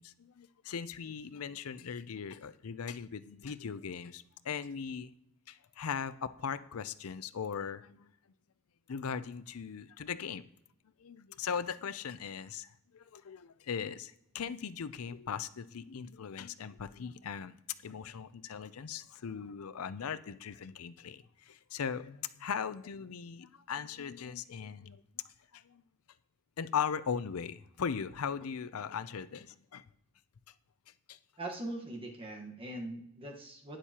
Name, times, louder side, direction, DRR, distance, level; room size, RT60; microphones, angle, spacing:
voice 1, 0.0-5.1 5.5-8.1 8.9-10.4 11.0-17.6 17.8-25.8 26.6-29.8 31.1-31.2, left 7 dB, 90° left, 0.5 m, -39 dB
voice 2, 31.4-33.8, right 1 dB, 25° right, 1.3 m, -41 dB
11.5 x 10.0 x 2.9 m
head